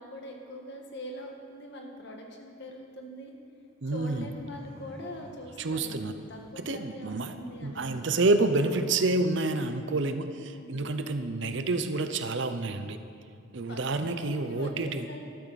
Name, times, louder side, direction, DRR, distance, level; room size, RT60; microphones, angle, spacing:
voice 1, 0.0-3.3 3.9-8.1 10.4-10.9 13.7-15.4, equal, 55° left, 1 dB, 1.5 m, -43 dB
voice 2, 3.8-4.3 5.6-6.1 6.7-7.3 7.6-13.0 13.5-15.1, right 2 dB, 60° right, 9 dB, 0.7 m, -28 dB
sound 1, 3.9-6.5 7.0-9.8, right 1 dB, 20° left, 3.7 m, -51 dB
13.5 x 12.5 x 4.1 m, 2.4 s
head